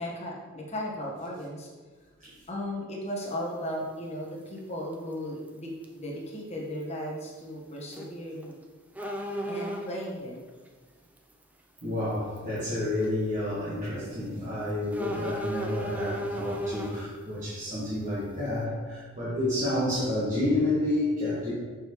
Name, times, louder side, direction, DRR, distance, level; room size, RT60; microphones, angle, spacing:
voice 1, 0.0-1.7 2.5-8.6 9.5-10.5, equal, 30° left, -4 dB, 1.3 m, -36 dB
sound 1, 3.2-3.3 4.9-5.1 5.5-5.6 5.8-5.9 7.8-8.1 8.4-8.5 9.0-10.1 11.2-11.3 11.8-11.9 12.4-12.6 13.0-13.1 14.9-17.1, right 1 dB, 5° right, 0.4 m, -34 dB
voice 2, 11.8-21.5, left 1 dB, 40° right, -10 dB, 1.5 m, -30 dB
6.4 x 5.3 x 3.1 m, 1.4 s
head